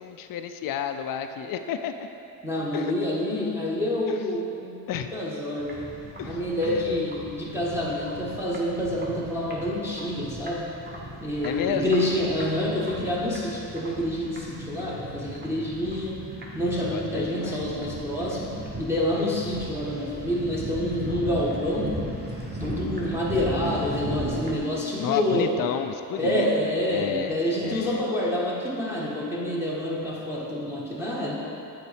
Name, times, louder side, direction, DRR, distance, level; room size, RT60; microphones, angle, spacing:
voice 1, 0.0-2.1 2.7-2.9 4.1-4.2 4.9-5.1 6.2-7.0 7.9-8.0 11.4-12.0 16.9-17.9 25.0-28.0, left 8 dB, 55° left, 8 dB, 0.5 m, -32 dB
voice 2, 2.4-4.8 5.1-6.0 6.2-10.8 11.2-16.2 16.5-22.0 22.6-25.6 26.2-31.5, left 1 dB, 5° right, -5 dB, 1.0 m, -27 dB
sound 1, 5.6-24.6, right 1 dB, 25° right, 1.3 m, -37 dB
8.2 x 4.0 x 4.9 m, 2.8 s
cardioid pair, 85°, 43 cm